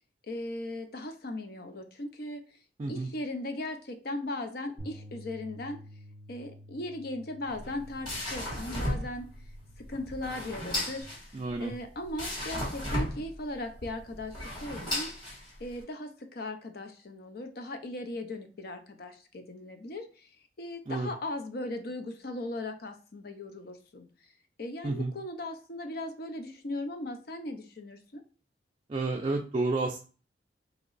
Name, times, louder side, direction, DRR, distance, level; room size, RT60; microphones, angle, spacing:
voice 1, 0.3-2.4 2.9-5.8 6.3-9.3 9.8-11.1 11.6-15.1 15.6-20.3 20.6-24.0 24.6-28.2, left 1 dB, 60° left, 7 dB, 0.6 m, -38 dB
Bass guitar, 4.8-11.0, equal, 85° left, 1.6 m, -50 dB
sound 1, 7.5-15.8, left 1 dB, 25° left, 1.8 m, -35 dB
voice 2, 11.3-11.7 20.9-21.1 24.8-25.1 28.9-30.0, right 3 dB, 30° right, 1 dB, 0.3 m, -30 dB
3.0 x 2.9 x 3.8 m, 0.38 s
head